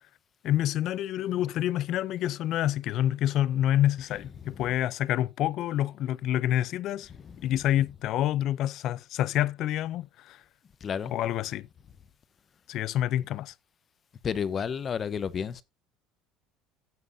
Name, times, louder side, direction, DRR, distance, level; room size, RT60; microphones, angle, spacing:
voice 1, 0.4-7.1 7.4-10.4 11.1-11.7 12.7-13.5, left 12 dB, 50° left, 0.5 m, -27 dB
voice 2, 7.1-7.5 10.8-11.1 14.2-15.6, left 7 dB, 30° left, 0.8 m, -32 dB
15.0 x 7.8 x 2.7 m
cardioid pair, 150°, 0 cm